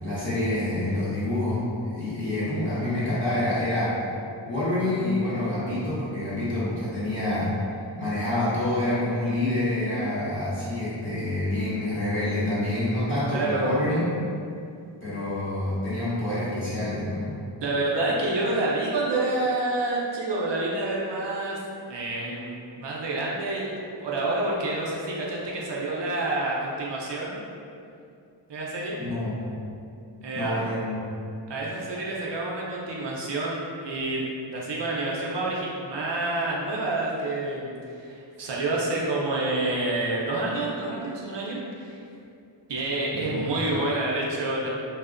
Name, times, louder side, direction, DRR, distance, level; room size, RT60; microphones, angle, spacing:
voice 1, 0.0-4.0 4.4-14.1 15.0-17.4 29.0-29.4 30.3-31.0 43.1-43.4, left 1 dB, 25° left, -12 dB, 1.2 m, -27 dB
voice 2, 13.3-13.7 17.6-21.6 21.9-27.4 28.5-29.0 30.2-30.5 31.5-42.0 42.7-44.7, right 2 dB, 65° right, -4 dB, 0.5 m, -28 dB
2.6 x 2.0 x 2.4 m, 2.5 s
wide cardioid pair, 45°, 46 cm